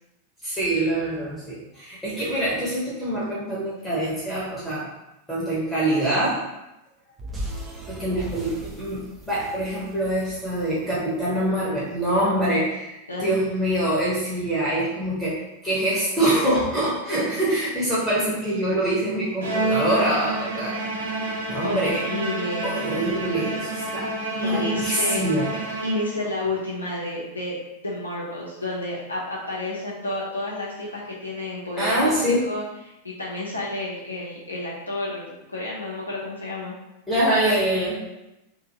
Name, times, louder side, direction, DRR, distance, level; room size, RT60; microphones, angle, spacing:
voice 1, 0.4-4.8 5.3-6.4 7.9-9.0 9.3-20.7 21.5-22.0 22.6-24.1 24.3-25.5 31.8-32.4 37.1-38.0, right 1 dB, 5° left, -8 dB, 1.0 m, -24 dB
sound 1, 7.2-11.6, right 1 dB, 20° right, 0.6 m, -37 dB
Bowed string instrument, 19.4-26.4, right 2 dB, 65° right, 0.6 m, -29 dB
voice 2, 21.6-22.8 24.4-25.2 25.8-32.6 33.0-36.8, left 2 dB, 80° left, -6 dB, 0.6 m, -30 dB
2.6 x 2.6 x 2.8 m, 0.93 s
figure-of-eight pair, 90°, 0 cm